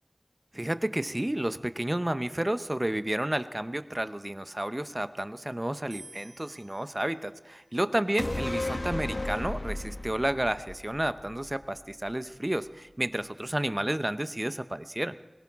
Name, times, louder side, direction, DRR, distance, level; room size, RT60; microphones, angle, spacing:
voice 1, 0.5-15.2, right 1 dB, 30° right, 11 dB, 0.7 m, -31 dB
sound 1, 5.9-9.1, right 2 dB, 85° right, 1.9 m, -55 dB
sound 2, 8.2-11.8 12.1-12.2, left 1 dB, 60° left, 1.1 m, -34 dB
22.0 x 17.5 x 3.7 m, 1.1 s
wide cardioid pair, 50°, 0 cm